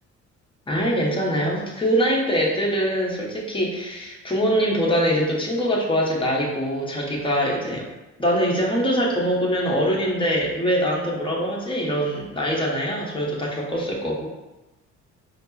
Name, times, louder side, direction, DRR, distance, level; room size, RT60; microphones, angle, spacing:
voice 1, 0.7-7.8 8.2-14.3, equal, 15° left, -3 dB, 1.1 m, -23 dB
5.0 x 2.0 x 4.2 m, 1.1 s
cardioid pair, 90°, 30 cm